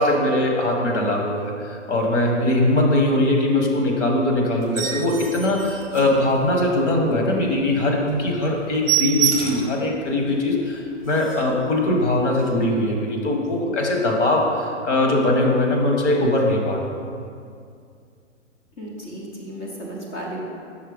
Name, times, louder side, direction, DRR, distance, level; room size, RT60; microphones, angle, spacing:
voice 1, 0.0-16.9, left 1 dB, 65° left, 1 dB, 1.4 m, -21 dB
sound 1, 4.6-6.7 7.2-7.3 7.7-7.8 8.1-8.2 8.5-9.8 10.3-10.4 10.7-10.8 11.0-11.6 12.3-12.5, right 10 dB, 20° right, 0.8 m, -27 dB
voice 2, 18.8-20.4, right 1 dB, 10° left, -3 dB, 0.4 m, -34 dB
5.7 x 4.3 x 5.1 m, 2.3 s
hypercardioid pair, 140°, 38 cm